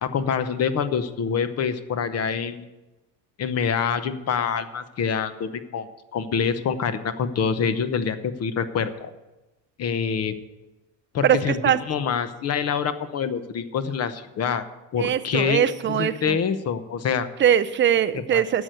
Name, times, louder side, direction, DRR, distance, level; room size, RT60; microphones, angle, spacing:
voice 1, 0.0-2.7 3.4-9.1 9.8-10.4 11.1-11.6 11.9-14.6 14.9-17.3 18.3-18.4, left 6 dB, 35° left, 12 dB, 0.9 m, -26 dB
voice 2, 11.2-11.8 15.0-16.4 17.4-18.6, right 9 dB, 30° right, 14 dB, 0.4 m, -21 dB
11.0 x 7.8 x 7.9 m, 1.1 s
cardioid pair, 145°, 44 cm